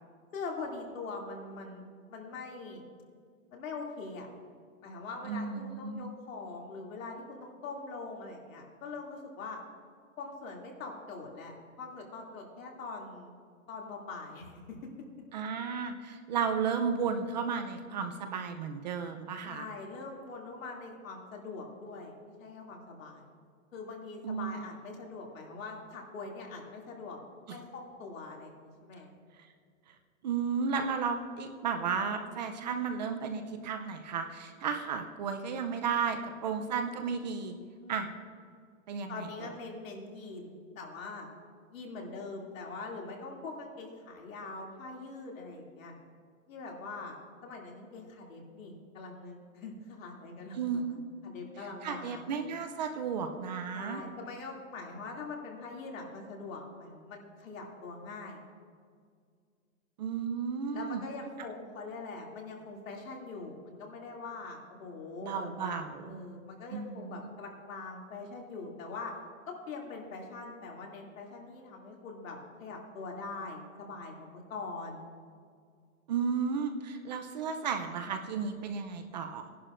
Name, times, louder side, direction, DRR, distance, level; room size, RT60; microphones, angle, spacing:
voice 1, 0.3-2.8 3.5-4.3 4.8-9.6 10.2-13.3 13.7-14.8 19.4-23.2 23.7-27.2 27.5-28.5 28.8-29.1 37.8-38.1 39.1-41.3 41.7-45.9 46.5-47.1 47.4-52.2 53.7-58.4 60.7-69.2 69.5-75.0, left 3 dB, 75° left, 0 dB, 2.7 m, -43 dB
voice 2, 5.2-6.1 15.3-19.7 24.2-24.7 27.5-27.6 30.2-37.6 37.9-38.1 38.9-39.5 50.5-51.1 51.8-54.0 60.0-61.0 65.2-66.1 66.7-67.3 76.1-79.5, right 6 dB, 35° right, 6 dB, 0.5 m, -33 dB
19.5 x 11.0 x 2.5 m, 2.1 s
hypercardioid pair, 160°, 41 cm